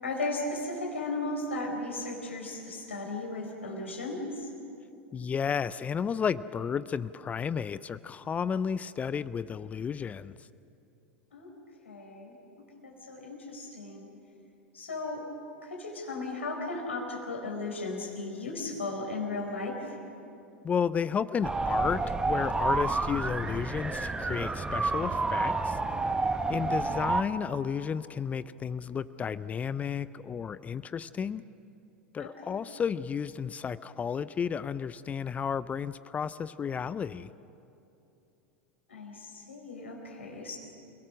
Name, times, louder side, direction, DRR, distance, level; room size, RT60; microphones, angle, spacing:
voice 1, 0.0-4.5 11.3-11.5 11.8-14.1 14.7-15.3 15.6-19.9 26.4-27.0 32.2-32.6 38.9-40.6, left 2 dB, 80° left, 1 dB, 4.6 m, -36 dB
voice 2, 5.1-10.4 20.6-25.8 26.5-31.4 32.1-37.3, left 7 dB, 20° left, 16 dB, 0.5 m, -32 dB
sound 1, 21.4-27.2, right 3 dB, 10° right, 1.1 m, -29 dB
29.0 x 18.0 x 6.2 m, 2.7 s
figure-of-eight pair, 85°, 6 cm